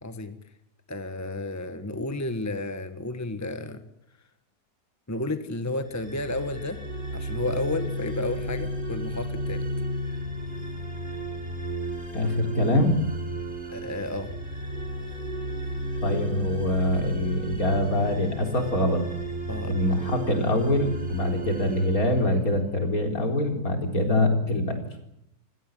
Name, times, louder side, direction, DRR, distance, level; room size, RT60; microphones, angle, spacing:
voice 1, 0.0-0.4 0.9-3.8 5.1-6.8 7.1-9.7 13.7-14.3 19.5-19.7, left 2 dB, 10° left, 9 dB, 1.5 m, -32 dB
sound 1, 5.9-23.0, equal, 30° right, 4.4 m, -33 dB
voice 2, 12.1-13.0 16.0-19.0 19.7-24.8, left 1 dB, 65° left, 4 dB, 4.6 m, -24 dB
29.0 x 17.0 x 9.3 m, 0.79 s
omnidirectional pair, 1.7 m